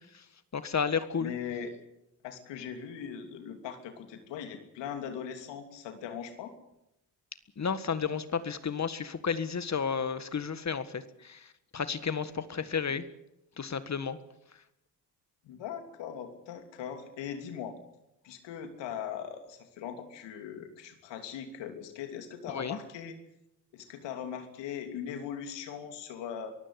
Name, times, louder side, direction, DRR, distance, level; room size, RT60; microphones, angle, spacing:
voice 1, 0.5-1.3 7.6-13.1 13.6-14.2 22.5-22.8, left 6 dB, 40° left, 13 dB, 1.7 m, -32 dB
voice 2, 1.2-1.7 2.2-6.5 15.4-17.8 18.2-23.2 23.7-26.5, left 8 dB, 85° left, 6 dB, 3.0 m, -40 dB
23.5 x 15.0 x 8.2 m, 0.84 s
supercardioid pair, 70°, 42 cm